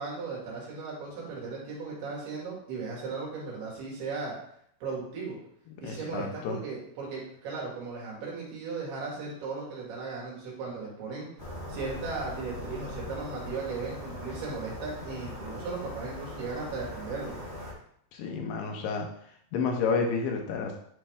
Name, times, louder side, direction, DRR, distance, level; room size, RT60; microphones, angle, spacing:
voice 1, 0.0-4.4 4.8-5.4 5.8-11.3 11.7-17.4, right 4 dB, 75° right, -4 dB, 3.8 m, -37 dB
voice 2, 5.8-6.6 18.1-19.1 19.5-20.8, left 5 dB, 80° left, 2 dB, 2.9 m, -30 dB
sound 1, 11.4-17.7, left 1 dB, 25° left, 0.8 m, -40 dB
9.8 x 3.3 x 3.4 m, 0.67 s
omnidirectional pair, 4.8 m